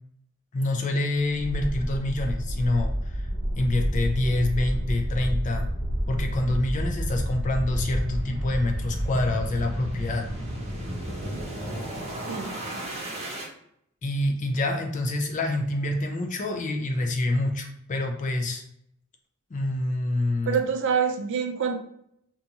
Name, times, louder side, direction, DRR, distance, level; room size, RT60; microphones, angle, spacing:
voice 1, 0.5-3.3 3.6-5.7 6.1-10.3 14.0-18.6 19.5-20.6, left 2 dB, 35° left, 3 dB, 0.4 m, -27 dB
sound 1, 1.3-13.5, equal, 30° right, 0.8 m, -30 dB
voice 2, 20.5-21.8, right 6 dB, 60° right, 5 dB, 0.4 m, -26 dB
2.6 x 2.3 x 2.7 m, 0.72 s
head